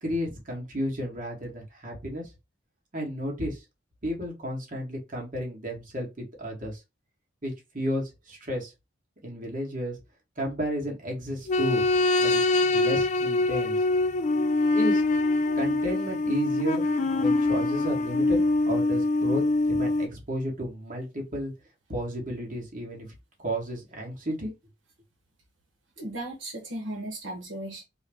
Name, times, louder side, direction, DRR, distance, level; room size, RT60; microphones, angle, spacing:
voice 1, 0.0-2.3 2.9-3.6 4.0-6.8 7.4-8.7 9.2-10.0 10.4-11.8 12.2-13.8 14.7-15.0 15.5-16.9 17.1-21.5 21.9-23.1 23.4-24.5, equal, 45° right, 1.4 m, -33 dB
sound 1, 11.5-20.1, left 2 dB, 40° left, 0.3 m, -24 dB
voice 2, 26.0-27.8, right 1 dB, 75° right, 1.1 m, -36 dB
4.5 x 2.1 x 3.4 m
head